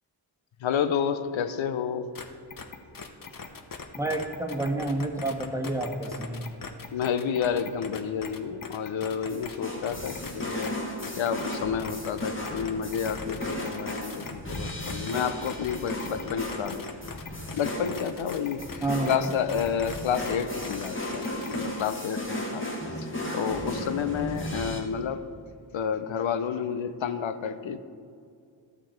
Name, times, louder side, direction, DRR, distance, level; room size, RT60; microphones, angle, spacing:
voice 1, 0.6-2.1 6.9-10.7 11.2-16.8 17.1-17.2 17.5-22.7 23.0-25.2 25.7-27.8, left 7 dB, 75° left, 11 dB, 0.7 m, -30 dB
sound 1, 2.1-2.2 2.5-9.6 9.8-10.7 11.0-21.9, left 5 dB, 45° left, 1.0 m, -40 dB
voice 2, 4.0-6.5 18.8-19.3, right 2 dB, 5° right, 2 dB, 1.3 m, -29 dB
sound 2, 9.3-24.8, left 1 dB, 25° left, 2.1 m, -35 dB
12.5 x 6.0 x 4.3 m, 2.3 s
cardioid pair, 45°, 48 cm